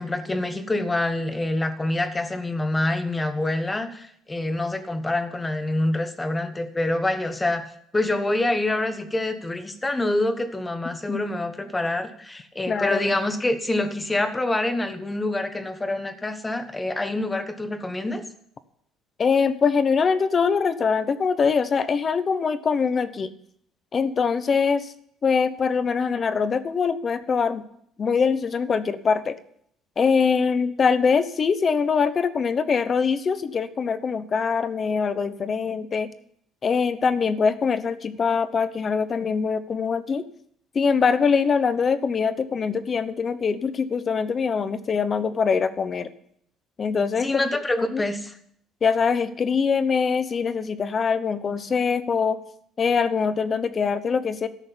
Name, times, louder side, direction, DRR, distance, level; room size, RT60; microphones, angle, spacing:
voice 1, 0.0-18.2 47.2-48.4, left 2 dB, 10° left, 8 dB, 1.2 m, -26 dB
voice 2, 12.7-13.0 19.2-23.3 23.9-24.9 25.2-27.6 28.0-29.4 30.0-36.1 36.6-40.2 40.7-46.1 46.8-47.3 47.8-48.0 48.8-52.4 52.8-54.5, left 5 dB, 30° left, 13 dB, 0.9 m, -23 dB
13.5 x 6.5 x 9.9 m, 0.69 s
cardioid pair, 150°, 0 cm